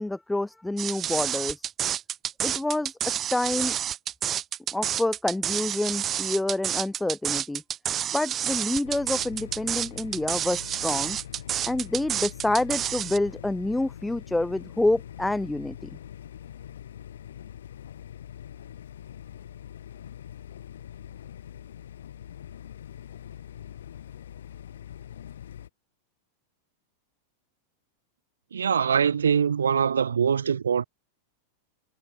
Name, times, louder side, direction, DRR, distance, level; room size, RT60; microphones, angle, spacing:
voice 1, 0.0-1.6 2.4-3.0 3.3-3.8 4.7-7.6 8.1-11.2 11.7-15.9, left 2 dB, 5° left, 1.0 m, -27 dB
sound 1, 0.8-13.2, right 10 dB, 25° right, 4.5 m, -29 dB
sound 2, 8.8-25.7, left 10 dB, 65° left, 5.6 m, -43 dB
voice 2, 28.5-30.8, right 7 dB, 70° right, 0.7 m, -23 dB
figure-of-eight pair, 90°, 0 cm